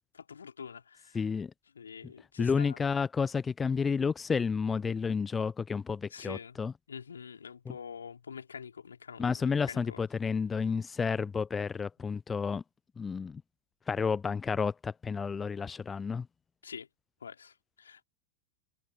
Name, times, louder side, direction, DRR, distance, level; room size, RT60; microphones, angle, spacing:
voice 1, 0.1-1.2 1.7-2.8 6.1-6.6 6.9-10.0 16.6-16.9 17.2-18.0, left 6 dB, 70° left, 2.9 m, -45 dB
voice 2, 1.1-1.5 2.4-6.7 9.2-12.6 13.0-13.4 13.9-16.3, left 5 dB, 15° left, 0.6 m, -31 dB
figure-of-eight pair, 90°, 0 cm